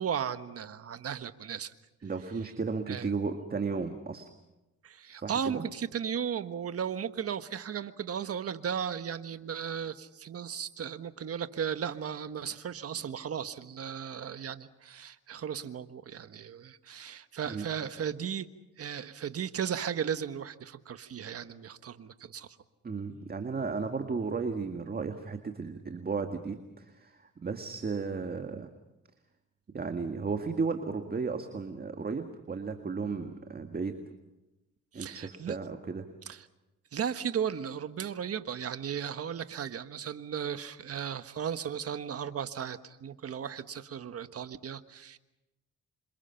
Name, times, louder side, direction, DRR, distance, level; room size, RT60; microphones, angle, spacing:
voice 1, 0.0-1.7 2.9-3.1 4.8-18.5 18.8-22.6 34.9-35.6 36.3-36.4 36.9-45.2, right 8 dB, 50° right, 10 dB, 1.5 m, -36 dB
voice 2, 2.0-4.3 5.1-5.6 17.4-17.6 22.8-28.7 29.7-34.0 34.9-36.0, right 4 dB, 30° right, 6 dB, 1.9 m, -34 dB
28.5 x 26.0 x 5.8 m, 1.0 s
cardioid pair, 90°, 30 cm